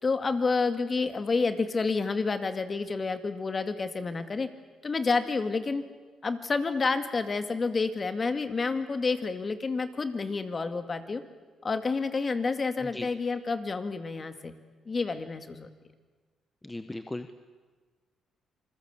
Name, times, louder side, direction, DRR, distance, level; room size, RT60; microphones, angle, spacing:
voice 1, 0.0-4.5 4.8-5.8 6.2-11.2 11.6-14.5 14.9-15.7, left 4 dB, 35° left, 9 dB, 2.2 m, -29 dB
voice 2, 16.6-17.3, left 2 dB, 10° left, 9 dB, 1.1 m, -37 dB
27.5 x 21.0 x 8.3 m, 1.4 s
cardioid pair, 90°, 0 cm